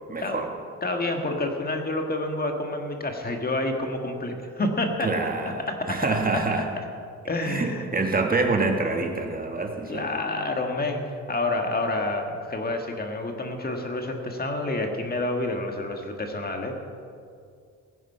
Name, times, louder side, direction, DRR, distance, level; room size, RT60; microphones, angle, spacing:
voice 1, 0.1-0.5 5.0-6.7 7.4-10.0, right 3 dB, 30° right, 3 dB, 1.5 m, -26 dB
voice 2, 0.8-5.3 5.7-6.1 6.3-6.4 6.8-6.9 7.3-7.9 9.9-16.7, left 2 dB, 30° left, 3 dB, 1.7 m, -28 dB
16.5 x 9.2 x 5.6 m, 2.3 s
cardioid pair, 90°, 30 cm